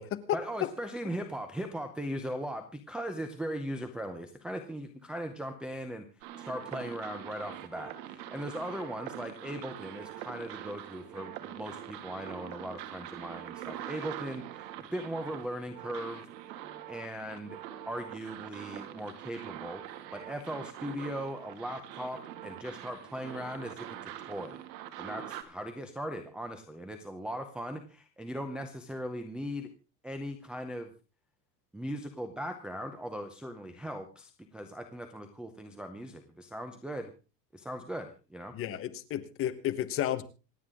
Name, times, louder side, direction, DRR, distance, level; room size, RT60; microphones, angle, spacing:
voice 1, 0.3-6.0 6.4-16.2 16.9-17.6 17.9-19.8 20.1-24.6 25.0-29.7 30.0-30.9 31.7-37.1 37.5-38.5, equal, ahead, 3 dB, 0.6 m, -39 dB
sound 1, 6.2-25.4, right 11 dB, 85° right, 2.3 m, -44 dB
voice 2, 38.5-40.2, left 11 dB, 25° left, 10 dB, 1.2 m, -32 dB
27.0 x 9.3 x 3.7 m, 0.32 s
supercardioid pair, 170°, 49 cm